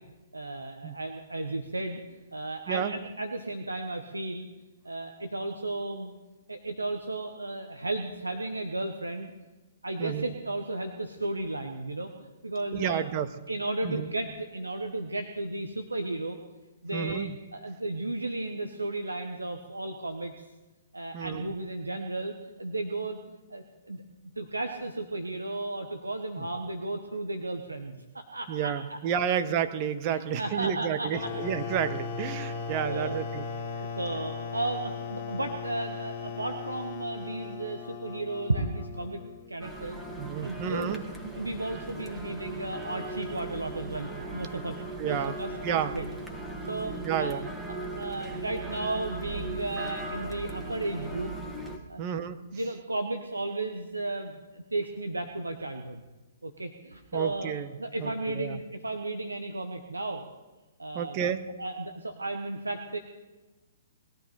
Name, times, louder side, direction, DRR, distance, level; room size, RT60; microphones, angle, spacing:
voice 1, 0.3-4.5 4.8-6.1 6.5-9.3 9.8-13.1 13.5-16.4 16.8-20.5 20.9-23.2 23.5-24.0 24.4-29.0 30.1-31.3 32.5-33.2 34.0-39.2 39.5-40.0 40.4-41.0 41.2-44.7 45.0-46.1 46.7-47.3 47.9-51.3 51.9-52.0 52.5-56.0 56.4-57.5 57.8-60.3 60.8-61.2 61.6-63.0, right 2 dB, 90° right, 5 dB, 1.3 m, -34 dB
voice 2, 10.0-10.3 12.7-13.3 13.8-14.1 16.9-17.4 21.1-21.5 26.4-26.5 28.5-33.4 40.2-41.0 45.0-45.4 45.6-45.9 47.0-47.5 52.0-52.4 57.1-57.7 58.0-58.6 60.9-61.4, right 8 dB, 35° right, 10 dB, 1.2 m, -31 dB
sound 1, 31.1-39.6, left 5 dB, 40° left, 2.1 m, -37 dB
sound 2, 39.6-51.8, right 2 dB, 5° right, 2.1 m, -38 dB
21.0 x 13.5 x 4.3 m, 1.1 s
figure-of-eight pair, 125°, 0 cm